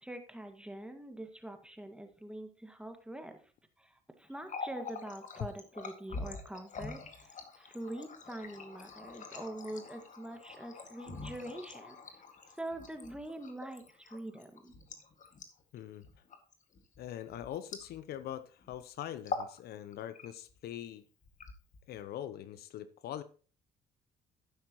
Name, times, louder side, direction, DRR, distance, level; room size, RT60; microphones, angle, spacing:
voice 1, 0.0-3.4 3.8-3.9 4.2-12.0 12.6-14.7, right 1 dB, 5° right, 1.9 m, -44 dB
Water tap faucet, 4.3-18.3 18.6-18.8 19.2-19.6 19.9-20.6 21.2-22.0, left 4 dB, 45° left, 2.0 m, -45 dB
voice 2, 15.7-16.1 17.0-21.0 21.9-23.2, left 11 dB, 65° left, 0.7 m, -43 dB
11.5 x 9.6 x 3.0 m
hypercardioid pair, 60°, 17 cm